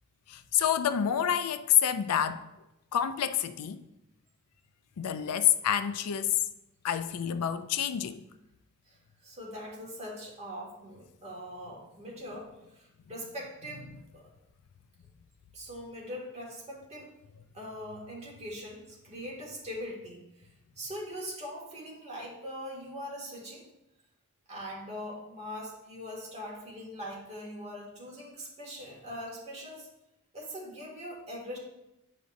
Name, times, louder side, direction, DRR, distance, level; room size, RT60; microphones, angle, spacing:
voice 1, 0.3-2.4 2.9-3.8 5.0-6.4 6.8-8.2, left 10 dB, 85° left, 12 dB, 0.4 m, -28 dB
voice 2, 8.9-12.5 12.7-13.9 14.1-14.2 15.5-17.1 17.5-20.2 20.8-23.6 24.5-29.9 30.3-31.6, equal, 30° right, -4 dB, 2.0 m, -41 dB
9.1 x 5.1 x 2.6 m, 0.89 s
head